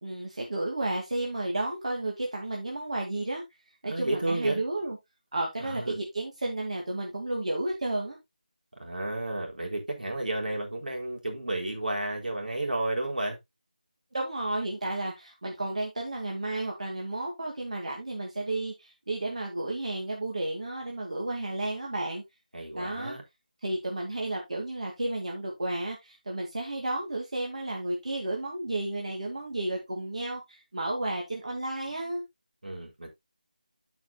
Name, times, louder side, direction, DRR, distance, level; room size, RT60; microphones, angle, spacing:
voice 1, 0.0-3.4 3.8-5.0 5.3-8.2 14.1-22.2 22.7-23.2 23.6-32.2, right 2 dB, 50° right, 2.2 m, -32 dB
voice 2, 3.8-4.6 5.6-6.0 8.8-13.4 22.5-23.2 32.6-33.1, right 2 dB, 75° right, 4.0 m, -32 dB
12.5 x 5.9 x 2.3 m
figure-of-eight pair, 175°, 5 cm